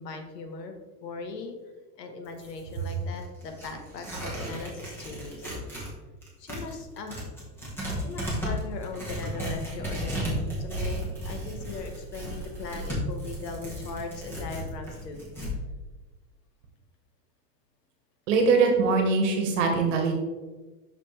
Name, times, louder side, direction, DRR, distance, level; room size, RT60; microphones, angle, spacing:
voice 1, 0.0-1.6 2.0-5.8 6.4-7.3 8.0-15.2, left 3 dB, 85° left, 5 dB, 1.4 m, -39 dB
Tearing, 2.2-5.9 6.2-15.5, equal, 5° left, 1.1 m, -34 dB
voice 2, 18.3-20.1, right 4 dB, 50° right, 3 dB, 1.4 m, -22 dB
6.1 x 5.9 x 3.3 m, 1.2 s
supercardioid pair, 170°, 48 cm